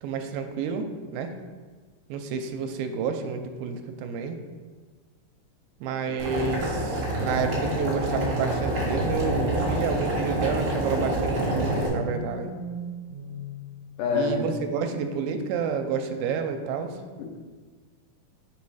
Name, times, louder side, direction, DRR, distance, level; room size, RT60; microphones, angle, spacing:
voice 1, 0.0-0.9 1.1-1.3 2.1-4.4 5.8-12.5 14.2-16.9, right 6 dB, 85° right, 6 dB, 2.3 m, -30 dB
Boiling, 6.2-11.9, right 1 dB, 60° right, 1.2 m, -27 dB
sound 1, 7.0-10.2 11.3-14.2, left 1 dB, 60° left, 0.9 m, -36 dB
voice 2, 14.0-14.5 17.2-17.3, left 5 dB, 75° left, 0 dB, 2.0 m, -26 dB
6.7 x 3.1 x 4.7 m, 1.4 s
omnidirectional pair, 4.1 m